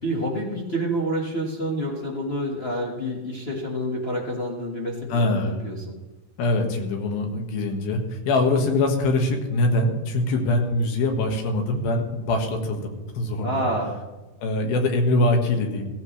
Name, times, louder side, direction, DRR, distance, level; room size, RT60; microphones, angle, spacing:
voice 1, 0.0-5.9 13.4-14.0, equal, 65° left, -3 dB, 0.6 m, -28 dB
voice 2, 5.1-5.6 6.4-13.7 14.4-15.8, left 2 dB, 80° left, 3 dB, 3.5 m, -23 dB
15.5 x 15.5 x 3.2 m, 1.2 s
omnidirectional pair, 4.2 m